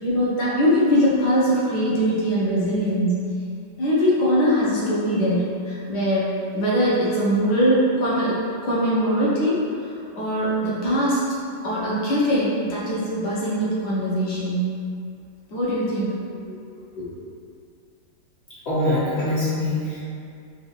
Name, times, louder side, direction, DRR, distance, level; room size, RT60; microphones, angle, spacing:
voice 1, 0.0-3.2 3.8-8.4 8.6-9.6 10.1-11.3 11.6-14.7 15.5-16.2 16.5-16.6 17.0-17.1, equal, 60° left, -7 dB, 1.3 m, -22 dB
voice 2, 18.6-20.0, left 1 dB, 35° left, -11 dB, 1.3 m, -23 dB
3.9 x 2.6 x 4.4 m, 2.4 s
omnidirectional pair, 2.4 m